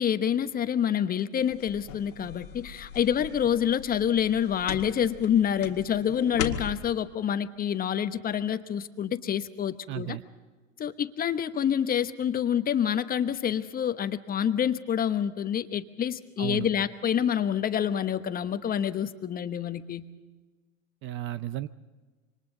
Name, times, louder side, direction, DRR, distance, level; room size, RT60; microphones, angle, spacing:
voice 1, 0.0-10.2 10.8-20.0, left 9 dB, 25° left, 11 dB, 1.1 m, -27 dB
sound 1, 1.4-6.9, left 8 dB, 75° left, 1.9 m, -39 dB
voice 2, 9.9-10.2 16.4-16.7 21.0-21.7, right 13 dB, 30° right, 15 dB, 0.6 m, -33 dB
27.5 x 24.5 x 4.0 m, 1.3 s
hypercardioid pair, 100°, 38 cm